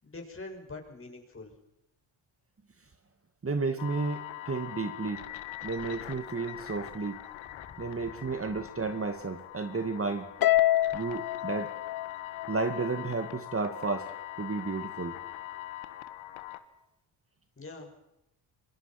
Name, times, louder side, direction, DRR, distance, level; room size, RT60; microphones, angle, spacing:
voice 1, 0.0-1.5 7.5-8.1 17.6-17.9, left 3 dB, 30° left, 2 dB, 6.7 m, -45 dB
voice 2, 3.4-4.2 4.5-5.2 5.6-7.2 7.8-10.3 10.9-11.7 12.5-14.1 14.4-15.2, right 4 dB, 30° right, 8 dB, 2.3 m, -32 dB
sound 1, 3.8-16.6, left 14 dB, 80° left, 1.7 m, -42 dB
Harp, 10.4-12.9, left 14 dB, 50° left, 0.8 m, -27 dB
27.0 x 23.5 x 6.1 m, 0.88 s
supercardioid pair, 70°, 46 cm